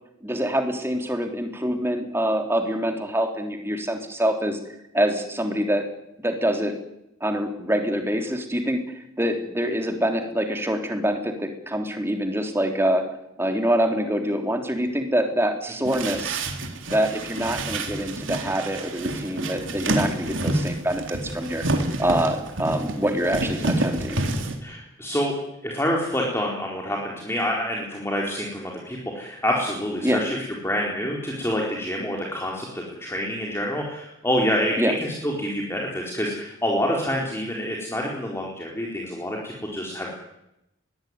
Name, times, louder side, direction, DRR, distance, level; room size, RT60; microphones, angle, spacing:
voice 1, 0.2-4.6 4.9-5.9 6.2-6.7 7.2-13.1 13.4-16.4 16.9-21.7 22.0-24.2 30.0-30.2 34.8-35.0, equal, 10° right, 5 dB, 3.3 m, -25 dB
sound 1, 15.8-24.5, right 2 dB, 70° right, 3.8 m, -28 dB
voice 2, 24.6-25.3 25.6-30.4 30.6-34.9 35.2-40.1, equal, 10° left, -1 dB, 4.0 m, -27 dB
22.5 x 18.5 x 9.6 m, 0.85 s
head